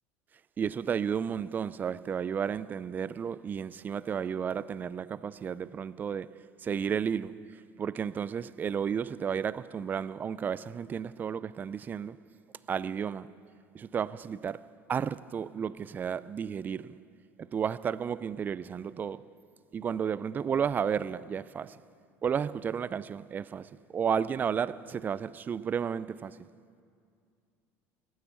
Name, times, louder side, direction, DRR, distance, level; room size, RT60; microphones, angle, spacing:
voice 1, 0.6-12.2 12.7-13.3 13.7-17.0 17.4-19.3 19.7-21.8 22.2-26.5, right 7 dB, 30° right, 0.4 m, -33 dB
17.5 x 9.6 x 8.2 m
supercardioid pair, 105°, 6 cm